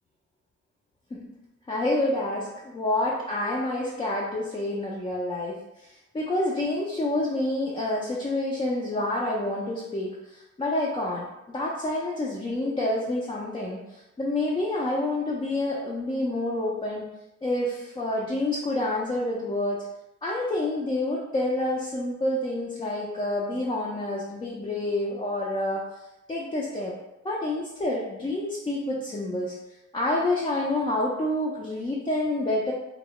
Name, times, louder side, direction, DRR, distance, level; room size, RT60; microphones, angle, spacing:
voice 1, 1.7-17.0 17.4-19.8 20.2-25.8 26.3-26.9 27.2-29.5 29.9-32.7, left 1 dB, 20° left, -5 dB, 0.3 m, -28 dB
2.2 x 2.1 x 2.8 m, 0.95 s
cardioid pair, 90°, 30 cm